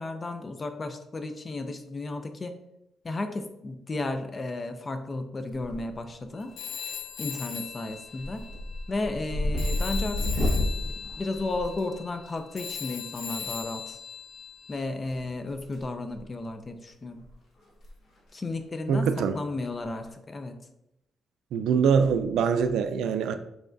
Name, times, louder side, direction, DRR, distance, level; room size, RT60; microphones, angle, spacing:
voice 1, 0.0-2.5 3.0-6.5 7.2-8.5 8.9-10.5 11.2-14.0 14.7-17.2 18.3-20.6, left 2 dB, 25° left, 0.4 m, -33 dB
sound 1, 5.5-6.1 6.4-6.9 7.3-7.6 7.9-12.3 13.7-13.8 15.0-15.8 16.1-16.3 16.9-17.0 17.2-17.3 17.7-17.9 18.2-18.3 19.8-20.1, left 1 dB, 55° left, 1.2 m, -31 dB
Telephone, 6.6-9.3 9.6-14.8, left 8 dB, 75° left, 0.7 m, -39 dB
voice 2, 18.9-19.4 21.5-23.4, right 6 dB, 90° right, 0.3 m, -24 dB
6.0 x 3.3 x 2.6 m
cardioid pair, 165°, 0 cm